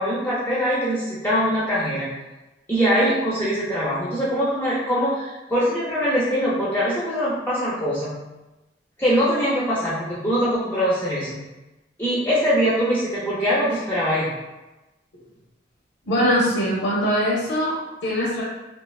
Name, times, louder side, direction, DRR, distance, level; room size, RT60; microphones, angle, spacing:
voice 1, 0.0-2.1 2.7-8.1 9.0-11.4 12.0-14.3, equal, 10° left, -9 dB, 0.4 m, -22 dB
voice 2, 16.0-18.4, equal, 85° left, -6 dB, 0.5 m, -22 dB
2.7 x 2.2 x 2.3 m, 1.0 s
head